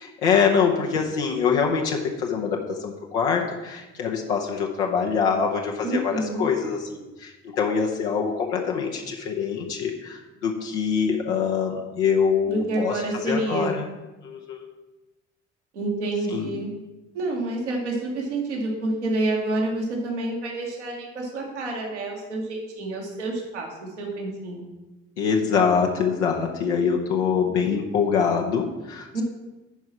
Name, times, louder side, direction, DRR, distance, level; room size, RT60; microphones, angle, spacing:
voice 1, 0.0-13.9 14.2-14.7 16.3-16.5 25.2-29.2, left 6 dB, 80° left, 0 dB, 0.9 m, -24 dB
voice 2, 5.8-6.4 12.5-13.8 15.7-16.7 17.1-23.7 24.0-24.7 29.1-29.2, right 2 dB, 85° right, -1 dB, 1.5 m, -28 dB
10.5 x 4.8 x 5.7 m, 1.1 s
figure-of-eight pair, 45°, 34 cm